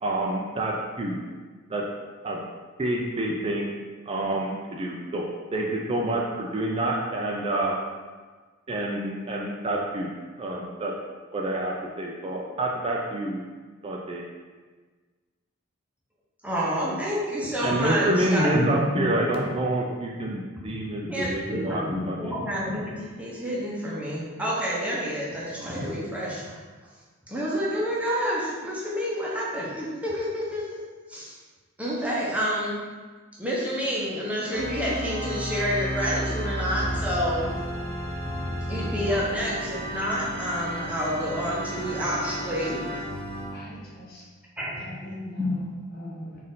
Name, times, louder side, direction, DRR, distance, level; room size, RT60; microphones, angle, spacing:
voice 1, 0.0-1.2 1.7-1.8 2.2-2.4 2.8-3.7 4.1-5.3 5.5-7.8 8.7-10.1 10.4-10.9 11.3-13.4 13.8-14.2 17.6-22.3, right 1 dB, 25° right, -1 dB, 0.3 m, -28 dB
voice 2, 16.4-18.8 19.2-19.6 20.7-26.6 27.3-30.7 31.1-31.4 31.8-32.8 33.4-37.5 38.7-42.8 44.6-44.8 45.4-45.5, equal, 5° right, -6 dB, 0.8 m, -28 dB
Organ, 34.5-43.6, equal, 65° right, 0.7 m, -32 dB
voice 3, 43.5-44.3 44.8-46.4, equal, 50° left, -4 dB, 0.9 m, -41 dB
4.2 x 2.6 x 3.7 m, 1.4 s
head